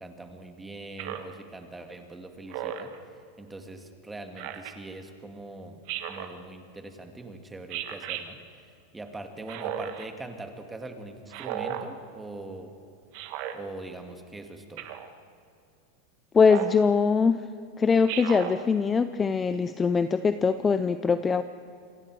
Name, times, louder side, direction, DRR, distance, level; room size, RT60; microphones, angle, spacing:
voice 1, 0.0-5.8 6.1-8.6 8.9-12.8 13.5-14.9, right 2 dB, 10° right, 5 dB, 1.8 m, -42 dB
Speech synthesizer, 1.0-1.4 2.5-3.0 4.4-4.7 5.9-6.3 7.7-8.2 9.5-10.1 11.3-11.9 13.1-13.6 14.8-15.1 16.4-16.8 18.1-18.6, right 10 dB, 50° right, 1.5 m, -34 dB
voice 2, 16.3-17.4 17.8-21.4, left 5 dB, 15° left, 11 dB, 0.5 m, -22 dB
27.5 x 23.0 x 4.7 m, 2.4 s
supercardioid pair, 150°, 0 cm